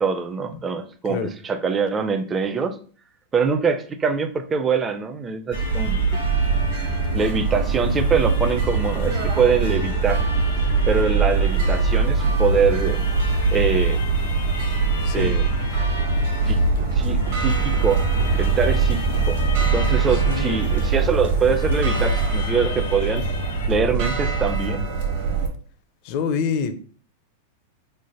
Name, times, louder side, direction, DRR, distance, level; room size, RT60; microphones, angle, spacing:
voice 1, 0.0-1.2 1.4-2.8 3.3-6.2 7.1-10.2 10.9-13.0 13.5-14.0 15.1-15.4 16.5-16.6 16.9-18.0 18.3-19.4 19.7-23.2 23.7-24.9, right 5 dB, 20° right, 9 dB, 0.4 m, -23 dB
sound 1, 5.5-23.7, left 5 dB, 90° left, 0.7 m, -38 dB
sound 2, 5.5-25.5, right 4 dB, 60° right, 1.0 m, -22 dB
voice 2, 15.0-15.3 16.4-16.5 20.1-20.6 26.0-26.8, left 6 dB, 50° left, 10 dB, 0.5 m, -26 dB
sound 3, 16.8-22.4, right 5 dB, 90° right, 0.7 m, -31 dB
3.2 x 2.0 x 4.1 m, 0.43 s
hypercardioid pair, 125°, 0 cm